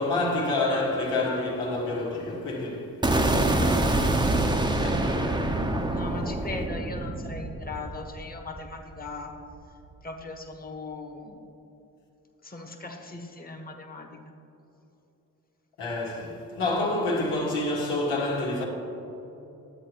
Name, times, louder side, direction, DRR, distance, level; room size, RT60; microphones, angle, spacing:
voice 1, 0.0-3.0 3.3-4.1 4.7-5.7 15.8-18.6, left 2 dB, 85° left, 1.7 m, -28 dB
sound 1, 3.0-9.1, right 1 dB, 10° right, 0.8 m, -26 dB
voice 2, 5.9-9.3 10.0-11.4 12.4-14.2, left 3 dB, 20° left, 1.3 m, -39 dB
11.0 x 8.1 x 3.0 m
hypercardioid pair, 45°, 41 cm